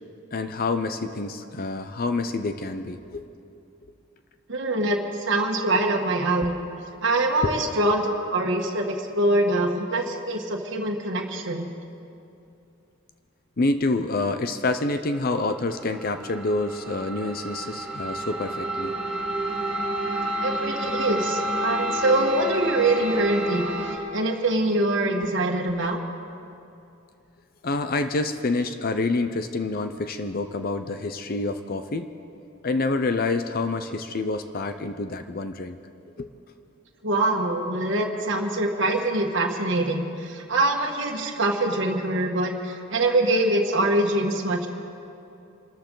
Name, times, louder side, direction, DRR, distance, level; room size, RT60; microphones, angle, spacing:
voice 1, 0.3-3.3 7.4-7.7 13.6-18.9 27.6-32.1 32.6-35.8 36.2-36.3, left 3 dB, 45° left, 8 dB, 0.6 m, -27 dB
voice 2, 4.5-6.5 7.0-11.7 20.4-23.6 24.1-26.0 37.0-44.7, right 2 dB, 60° right, 1 dB, 1.5 m, -24 dB
sound 1, 15.4-24.0, right 1 dB, 5° right, 3.7 m, -30 dB
26.0 x 13.5 x 3.9 m, 2.7 s
head